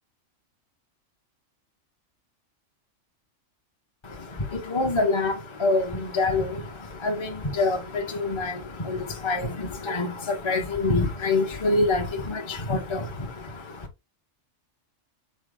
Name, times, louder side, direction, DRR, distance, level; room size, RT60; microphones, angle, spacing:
voice 1, 4.0-13.9, left 3 dB, 30° left, 0.6 m, -26 dB
5.3 x 2.0 x 4.7 m
omnidirectional pair, 1.3 m